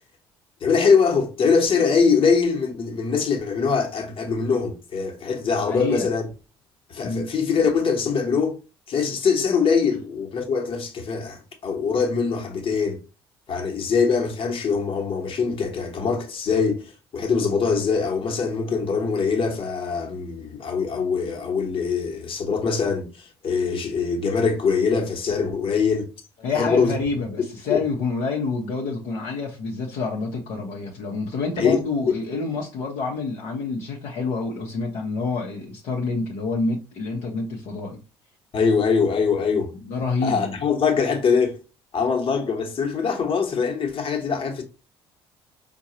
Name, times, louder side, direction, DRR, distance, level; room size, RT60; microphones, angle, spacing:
voice 1, 0.6-6.2 6.9-8.6 8.9-13.0 13.5-26.1 26.5-26.9 27.7-27.8 31.6-31.8 38.5-39.7 40.2-41.6 41.9-44.6, left 5 dB, 45° left, 1.1 m, -23 dB
voice 2, 5.7-6.1 7.0-7.3 26.4-38.0 39.5-40.6, left 4 dB, 65° left, 0.8 m, -28 dB
4.6 x 2.3 x 2.8 m
hypercardioid pair, 55°, 13 cm